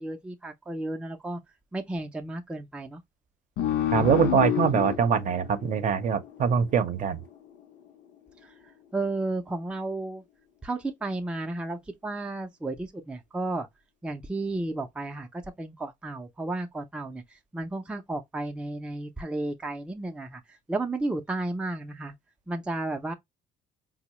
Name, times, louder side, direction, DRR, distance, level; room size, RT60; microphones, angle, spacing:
voice 1, 0.0-1.4 1.7-3.0 8.4-8.5 8.9-10.2 10.6-13.7 14.0-22.1 22.5-23.1, right 2 dB, 5° right, 0.4 m, -33 dB
sound 1, 3.6-6.7, left 10 dB, 85° left, 0.6 m, -29 dB
voice 2, 3.9-7.2, right 7 dB, 50° right, 0.6 m, -23 dB
4.5 x 2.0 x 2.9 m
cardioid pair, 110°, 17 cm